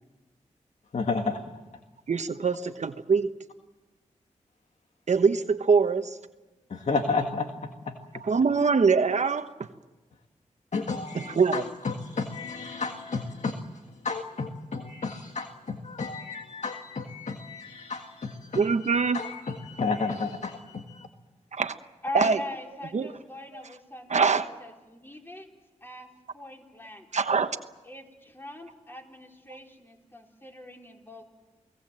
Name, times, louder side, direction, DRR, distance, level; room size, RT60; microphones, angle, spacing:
voice 1, 0.9-1.4 6.7-7.9 10.7-21.1, left 4 dB, 60° left, 5 dB, 1.8 m, -32 dB
voice 2, 2.1-3.3 5.1-6.2 8.2-9.5 11.1-11.6 18.5-19.2 21.5-21.7 22.1-22.4 22.9-23.1 24.1-24.5 27.1-27.5, right 5 dB, 60° right, 8 dB, 1.1 m, -23 dB
voice 3, 22.0-25.5 25.8-26.1 26.3-27.1 27.8-31.2, left 2 dB, 15° left, 1 dB, 4.5 m, -41 dB
29.0 x 18.0 x 7.7 m, 1.1 s
cardioid pair, 60°, 13 cm